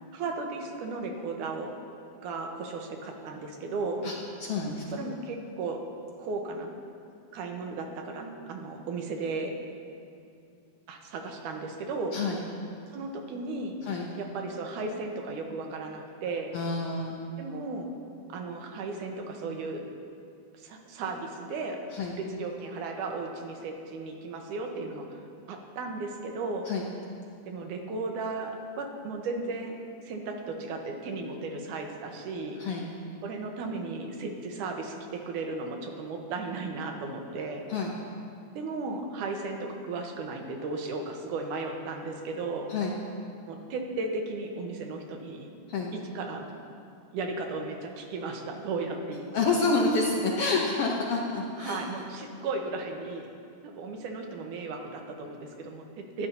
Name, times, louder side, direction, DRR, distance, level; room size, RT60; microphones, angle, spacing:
voice 1, 0.1-1.7 2.2-4.0 4.9-5.8 6.2-6.7 7.3-9.5 10.9-12.2 12.9-13.7 14.2-16.6 17.4-17.9 18.3-19.8 20.6-21.8 22.2-25.2 25.5-26.7 27.5-29.8 30.1-32.6 33.2-37.6 38.6-42.7 43.5-45.5 45.9-46.5 47.1-49.5 51.6-53.3 53.6-56.3, right 3 dB, 85° right, 3 dB, 2.6 m, -35 dB
voice 2, 4.4-5.0 12.1-12.4 13.8-14.1 16.5-17.2 21.9-22.1 26.6-26.8 32.6-32.8 37.7-37.9 42.7-42.9 45.7-45.9 49.3-51.8, left 3 dB, 70° left, -1 dB, 1.4 m, -28 dB
21.5 x 11.5 x 2.8 m, 2.5 s
omnidirectional pair, 3.5 m